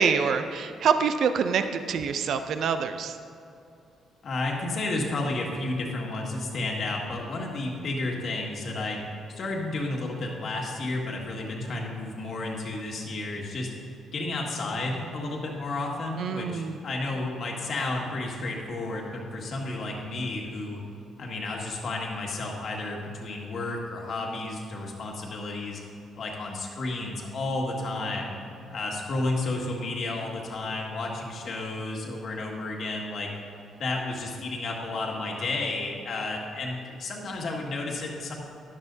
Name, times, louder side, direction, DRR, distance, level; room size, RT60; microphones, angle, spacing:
voice 1, 0.0-3.2 16.2-16.8, right 6 dB, 65° right, 9 dB, 0.5 m, -25 dB
voice 2, 4.2-9.0 9.3-13.7 14.1-20.8 21.2-25.8 26.1-28.4 28.7-33.3 33.8-38.3, left 2 dB, 55° left, -1 dB, 1.9 m, -32 dB
13.0 x 11.0 x 2.7 m, 2.6 s
cardioid pair, 90°, 0 cm